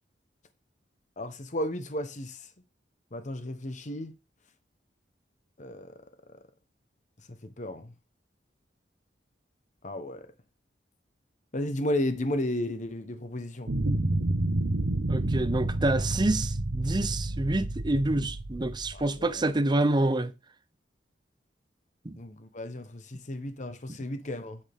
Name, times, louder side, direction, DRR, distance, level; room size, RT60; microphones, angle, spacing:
voice 1, 1.2-2.5 3.1-4.1 5.6-5.9 7.4-7.9 9.8-10.3 11.5-13.7 18.9-19.4 22.2-24.6, left 1 dB, 45° left, 1.0 m, -33 dB
sound 1, 13.7-19.4, right 1 dB, 75° right, 1.1 m, -29 dB
voice 2, 15.1-20.3 22.0-22.2, right 2 dB, 25° right, 0.7 m, -27 dB
8.5 x 8.3 x 3.6 m
head